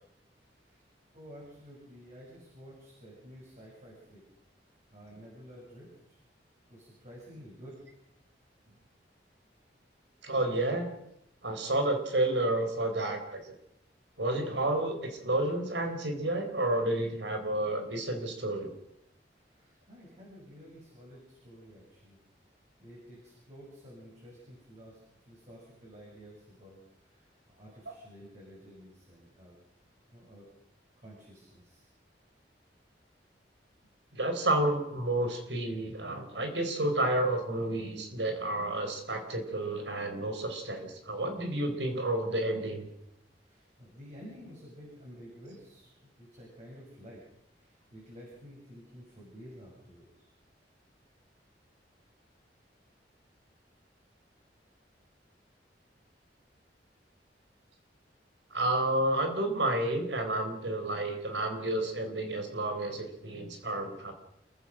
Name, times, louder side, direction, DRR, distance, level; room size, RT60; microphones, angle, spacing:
voice 1, 0.4-0.8 1.1-4.2 4.9-6.2 6.7-7.8 19.5-22.2 22.8-26.8 27.1-29.5 30.1-30.5 31.0-31.9 43.5-47.2 47.5-50.3, equal, 40° right, -4 dB, 7.3 m, -51 dB
voice 2, 10.2-10.9 11.4-13.5 14.2-18.7 34.1-42.8 58.5-64.1, right 1 dB, 90° right, 6 dB, 4.4 m, -30 dB
28.5 x 15.0 x 6.4 m, 0.81 s
head